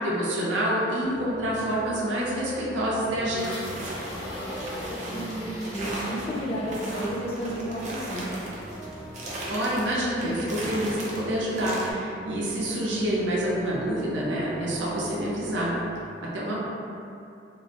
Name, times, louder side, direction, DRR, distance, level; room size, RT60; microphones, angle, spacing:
voice 1, 0.0-3.5 9.5-15.7 16.3-16.6, right 1 dB, 85° right, -5 dB, 0.6 m, -27 dB
sound 1, 1.0-16.0, right 1 dB, 55° right, 0.8 m, -42 dB
sound 2, 3.4-11.7, equal, 75° left, 0.7 m, -41 dB
sound 3, 3.6-11.9, right 1 dB, 40° right, 0.4 m, -37 dB
voice 2, 4.8-8.4, equal, 35° left, -5 dB, 0.4 m, -32 dB
2.4 x 2.0 x 2.8 m, 2.6 s
head